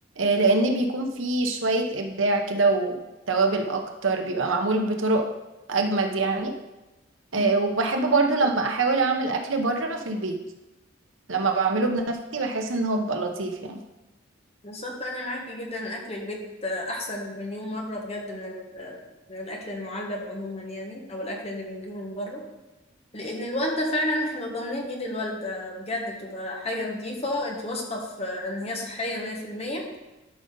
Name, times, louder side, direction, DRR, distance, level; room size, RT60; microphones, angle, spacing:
voice 1, 0.2-3.0 3.3-5.2 5.7-6.6 7.3-10.4 11.3-13.8, right 3 dB, 80° right, 4 dB, 1.0 m, -24 dB
voice 2, 14.6-19.0 19.3-22.4 23.1-29.9, left 1 dB, 30° left, 0 dB, 1.5 m, -32 dB
12.0 x 5.4 x 3.9 m, 1.0 s
head